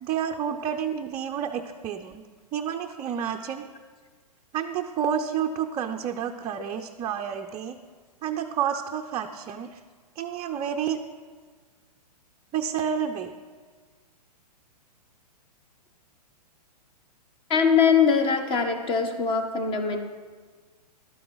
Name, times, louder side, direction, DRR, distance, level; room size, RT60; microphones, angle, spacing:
voice 1, 0.0-2.2 2.5-3.7 4.5-7.8 8.2-9.8 10.2-11.0 12.5-13.3, right 8 dB, 20° right, 4 dB, 0.5 m, -29 dB
voice 2, 17.5-20.0, left 6 dB, 25° left, 7 dB, 1.2 m, -22 dB
13.0 x 12.0 x 4.0 m, 1.5 s
hypercardioid pair, 125°, 21 cm